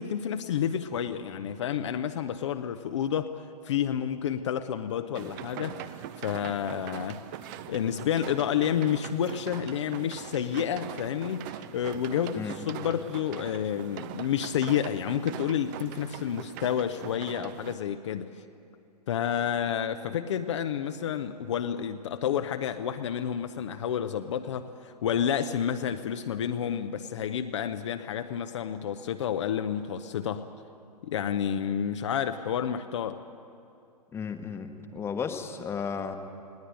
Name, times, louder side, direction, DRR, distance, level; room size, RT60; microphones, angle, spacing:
voice 1, 0.0-7.2 7.7-18.3 19.1-30.5 31.0-33.2, left 9 dB, 45° left, 8 dB, 0.8 m, -30 dB
sound 1, 5.1-17.8, right 11 dB, 30° right, 0.7 m, -42 dB
voice 2, 34.1-36.2, left 6 dB, 10° left, 8 dB, 1.2 m, -34 dB
20.0 x 18.0 x 9.0 m, 2.6 s
figure-of-eight pair, 115°, 21 cm